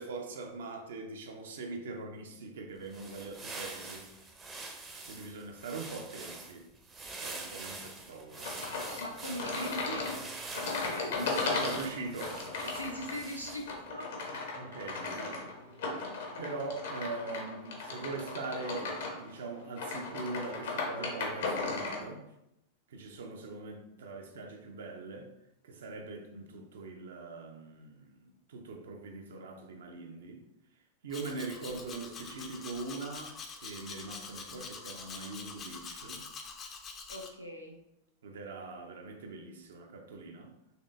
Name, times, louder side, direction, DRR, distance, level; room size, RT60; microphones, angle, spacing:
voice 1, 0.0-4.1 4.8-6.7 7.2-8.5 11.1-12.4 14.5-15.5 16.4-22.2 22.9-25.3 25.6-30.4 31.0-33.3 33.6-36.2 38.2-40.5, right 3 dB, 60° right, 4 dB, 0.6 m, -42 dB
sound 1, 2.8-13.8, right 3 dB, 20° right, 0.6 m, -45 dB
sound 2, 8.4-22.0, left 3 dB, 60° left, 0.8 m, -36 dB
voice 2, 9.0-10.3 10.9-11.8 12.6-14.1 15.1-15.4 37.1-37.8, equal, 90° left, 0 dB, 0.6 m, -41 dB
Domestic sounds home sounds, 31.1-37.3, left 5 dB, 25° left, 0.5 m, -45 dB
4.2 x 3.1 x 2.5 m, 0.85 s
figure-of-eight pair, 90°, 0 cm